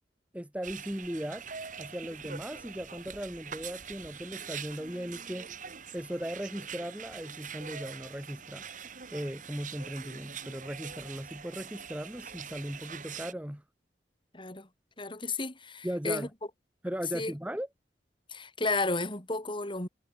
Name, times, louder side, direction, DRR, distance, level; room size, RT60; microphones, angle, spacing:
voice 1, 0.3-1.5 1.8-5.5 5.9-8.6 9.1-13.6 15.8-16.3 16.8-17.7, equal, 10° right, 1.9 m, -37 dB
sound 1, 0.6-13.3, right 7 dB, 50° right, 2.6 m, -44 dB
voice 2, 14.3-14.7 15.0-16.3 17.1-17.3 18.3-19.9, left 3 dB, 30° left, 4.3 m, -32 dB
head